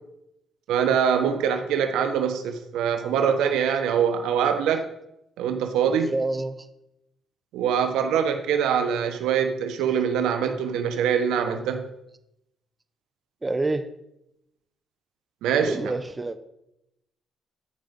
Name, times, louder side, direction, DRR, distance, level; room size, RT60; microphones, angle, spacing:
voice 1, 0.7-4.9 5.4-6.1 7.5-11.9 15.4-15.9, right 7 dB, 90° right, 7 dB, 1.1 m, -24 dB
voice 2, 6.1-6.7 13.4-13.9 15.6-16.4, right 2 dB, 20° right, 11 dB, 0.8 m, -27 dB
14.0 x 5.2 x 5.3 m, 0.82 s
cardioid pair, 90°, 0 cm